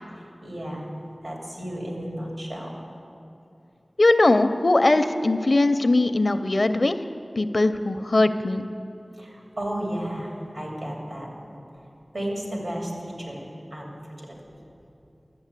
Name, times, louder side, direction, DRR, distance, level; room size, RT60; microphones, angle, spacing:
voice 1, 0.4-0.9 1.2-2.7 9.2-11.3 12.1-13.4 13.7-13.9 14.2-14.3, right 1 dB, 75° right, -2 dB, 2.8 m, -33 dB
voice 2, 4.0-7.0 7.4-8.7, left 2 dB, 60° left, 10 dB, 0.5 m, -20 dB
12.0 x 8.0 x 8.2 m, 2.7 s
wide cardioid pair, 55°, 0 cm